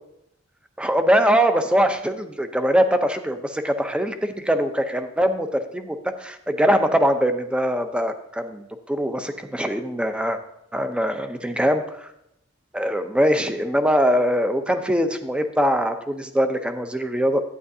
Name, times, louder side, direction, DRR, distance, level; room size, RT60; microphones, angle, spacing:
voice 1, 0.8-10.4 10.7-12.1 12.7-17.4, equal, 5° right, 8 dB, 0.6 m, -22 dB
11.0 x 9.5 x 2.7 m, 0.80 s
head